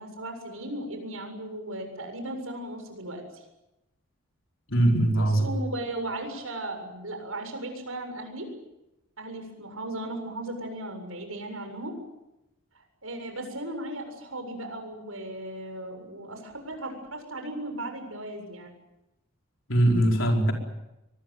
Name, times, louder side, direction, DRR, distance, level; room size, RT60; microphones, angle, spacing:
voice 1, 0.0-3.4 5.1-8.5 9.2-12.0 13.0-18.7, right 1 dB, 75° right, 5 dB, 7.3 m, -36 dB
voice 2, 4.7-5.5 19.7-20.5, right 1 dB, 60° left, 2 dB, 5.0 m, -21 dB
23.5 x 21.0 x 9.4 m, 0.92 s
head